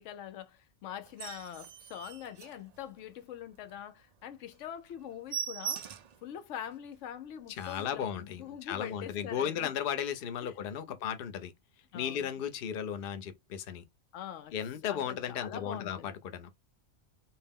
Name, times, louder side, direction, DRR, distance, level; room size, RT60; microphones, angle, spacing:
voice 1, 0.0-5.8 6.2-9.7 10.4-10.6 10.9-11.0 11.9-12.3 14.1-14.5 14.9-16.1, left 10 dB, 85° left, 0.9 m, -44 dB
sound 1, 1.0-3.2 3.6-3.7 4.1-4.2 4.5-4.6 4.9-6.2 6.7-6.8 7.2-7.3 7.5-8.0 8.7-8.9, right 8 dB, 65° right, 0.4 m, -41 dB
voice 2, 7.5-11.5 11.9-13.8 14.5-16.5, left 8 dB, 55° left, 0.7 m, -35 dB
4.3 x 2.1 x 3.5 m
omnidirectional pair, 1.2 m